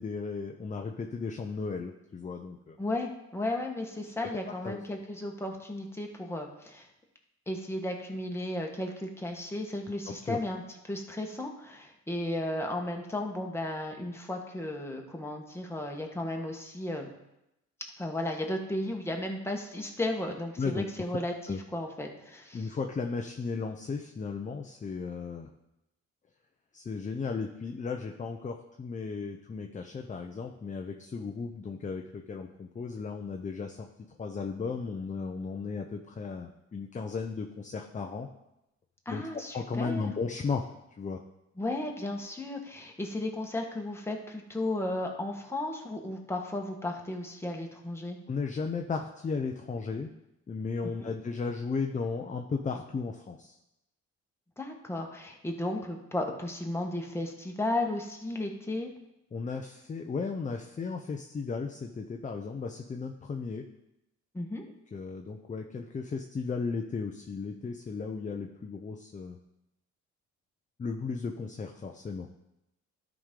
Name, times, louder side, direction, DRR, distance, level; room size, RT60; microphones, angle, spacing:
voice 1, 0.0-2.8 4.6-4.8 10.2-10.4 20.6-20.8 21.5-21.6 22.5-25.5 26.7-33.9 34.2-38.3 39.1-39.2 39.5-40.6 41.0-41.2 48.3-50.1 50.5-53.6 59.3-63.7 64.9-69.4 70.8-72.3, left 4 dB, 25° left, 4 dB, 0.6 m, -35 dB
voice 2, 2.8-6.9 7.5-17.1 18.0-22.6 39.0-40.1 41.6-48.2 50.8-51.1 54.6-58.9 64.3-64.7, left 1 dB, 10° left, 1 dB, 1.4 m, -34 dB
12.5 x 5.1 x 3.8 m, 0.89 s
cardioid pair, 90°, 30 cm